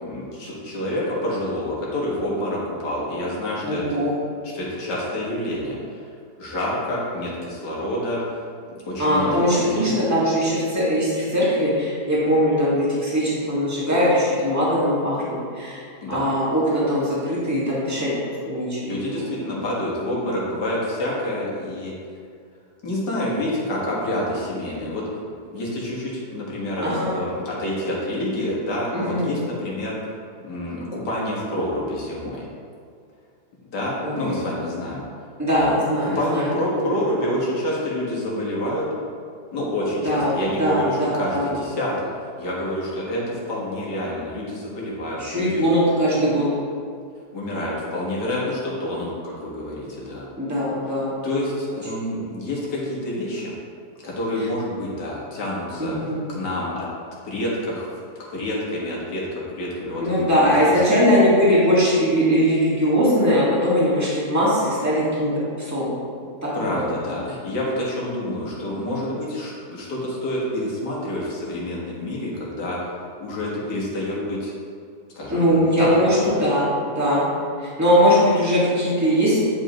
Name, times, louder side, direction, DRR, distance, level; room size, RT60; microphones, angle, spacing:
voice 1, 0.0-4.0 4.4-6.1 6.4-8.2 8.9-10.0 16.0-16.2 18.8-21.9 22.8-25.1 25.5-30.0 30.4-32.5 33.7-35.0 35.5-38.9 39.5-42.1 42.4-45.6 47.3-50.3 51.2-53.5 54.0-55.9 56.3-56.9 57.2-57.9 58.3-61.0 66.5-72.9 73.2-74.5 75.1-75.9 76.2-76.5, left 1 dB, 80° left, -5 dB, 2.1 m, -28 dB
voice 2, 3.6-4.2 9.0-15.8 16.1-18.1 18.4-18.9 19.2-19.3 26.8-27.1 28.9-29.3 34.0-34.4 35.4-36.9 40.0-41.5 45.2-46.5 50.4-51.1 55.8-56.2 60.0-66.0 66.4-67.1 75.3-77.3 77.6-79.4, equal, 10° right, -8 dB, 1.7 m, -21 dB
9.6 x 5.1 x 3.0 m, 2.3 s
omnidirectional pair, 1.8 m